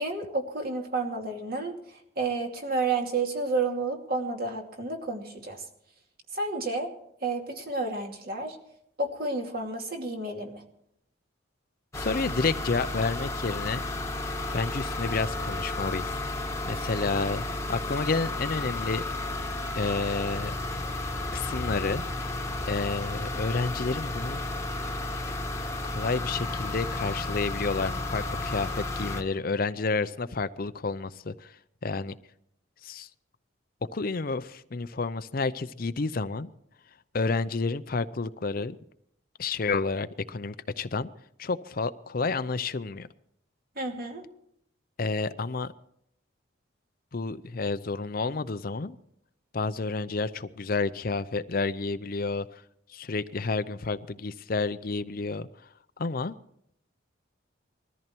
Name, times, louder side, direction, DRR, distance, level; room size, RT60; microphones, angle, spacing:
voice 1, 0.0-5.6 6.3-6.9 7.2-8.6 9.0-10.6 43.8-44.2, right 3 dB, 50° right, 2 dB, 2.6 m, -31 dB
voice 2, 11.9-13.8 14.5-16.2 16.6-17.4 17.7-19.0 19.8-20.5 21.3-22.0 22.7-24.4 25.8-31.6 31.8-32.1 32.8-33.1 33.9-36.5 37.1-38.8 39.4-41.1 41.4-43.1 45.0-45.7 47.1-49.0 49.5-52.6 52.9-55.5 56.0-56.4, left 3 dB, 45° left, 13 dB, 0.6 m, -30 dB
sound 1, 11.9-29.2, left 2 dB, 15° left, 1.3 m, -33 dB
21.0 x 14.0 x 4.5 m, 0.73 s
head